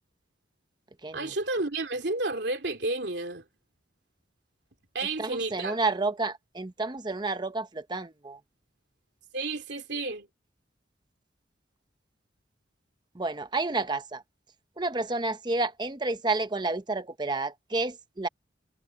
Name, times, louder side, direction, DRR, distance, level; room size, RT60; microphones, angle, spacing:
voice 1, 1.1-3.4 4.9-5.8 9.3-10.3, right 2 dB, 65° right, 3.1 m, -31 dB
voice 2, 5.2-8.4 13.1-14.2 14.8-18.3, right 3 dB, 25° right, 0.8 m, -30 dB
head